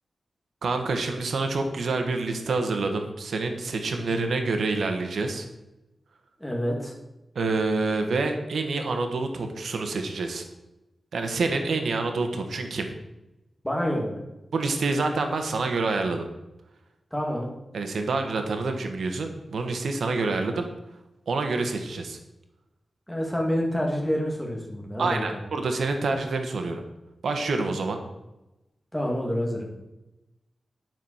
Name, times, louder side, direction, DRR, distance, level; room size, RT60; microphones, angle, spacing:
voice 1, 0.6-5.5 7.3-10.4 11.1-12.9 14.5-16.3 17.7-20.7 21.3-22.2 25.0-26.8 27.2-28.0, right 3 dB, 85° right, 5 dB, 1.4 m, -27 dB
voice 2, 6.4-6.9 13.6-14.2 17.1-17.5 23.1-25.4 28.9-29.7, equal, 5° left, -1 dB, 2.7 m, -28 dB
11.0 x 6.1 x 7.2 m, 0.98 s
wide cardioid pair, 100°, 0 cm